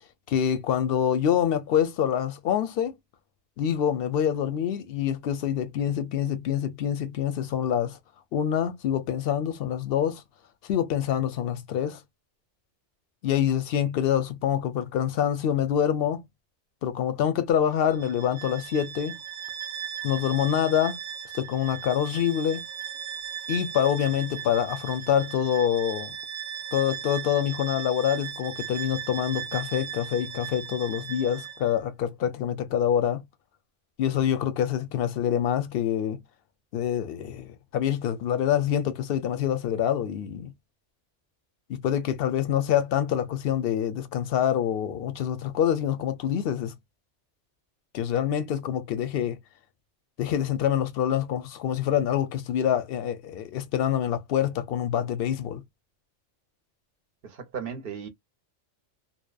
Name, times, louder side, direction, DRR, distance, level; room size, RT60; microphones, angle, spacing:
voice 1, 0.3-2.9 3.6-8.0 8.3-10.2 10.6-12.0 13.2-16.2 16.8-19.2 20.0-21.0 21.3-22.6 23.5-26.1 26.7-33.2 34.0-36.2 36.7-40.5 41.7-46.8 47.9-49.4 50.2-55.6, left 9 dB, 60° left, 0.7 m, -26 dB
Bowed string instrument, 17.9-31.8, right 9 dB, 90° right, 0.9 m, -37 dB
voice 2, 57.2-58.1, right 6 dB, 55° right, 0.8 m, -36 dB
2.7 x 2.0 x 2.2 m
omnidirectional pair, 1.3 m